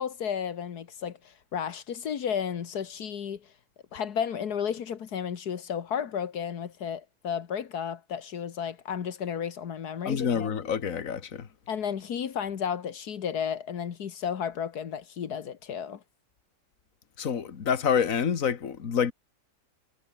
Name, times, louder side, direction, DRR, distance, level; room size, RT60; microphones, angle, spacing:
voice 1, 0.0-3.5 3.9-10.5 11.7-16.0, left 8 dB, 85° left, 1.9 m, -33 dB
voice 2, 10.1-11.5 17.2-19.1, left 7 dB, 60° left, 2.0 m, -27 dB
omnidirectional pair, 1.6 m